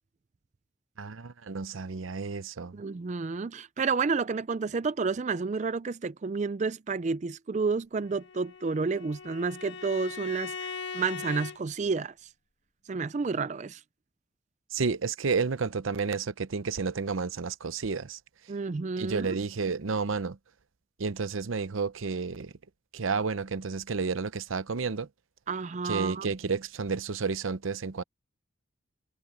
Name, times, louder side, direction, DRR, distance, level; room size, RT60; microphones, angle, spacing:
voice 1, 1.0-2.8 14.7-18.2 19.0-20.4 21.0-22.5 22.9-25.1 25.8-28.0, right 4 dB, 90° right, 0.7 m, -31 dB
voice 2, 2.7-12.1 12.9-13.8 18.5-19.4 25.5-26.3, right 4 dB, 35° right, 0.4 m, -30 dB
Bowed string instrument, 8.0-11.6, left 5 dB, 60° left, 2.0 m, -40 dB
head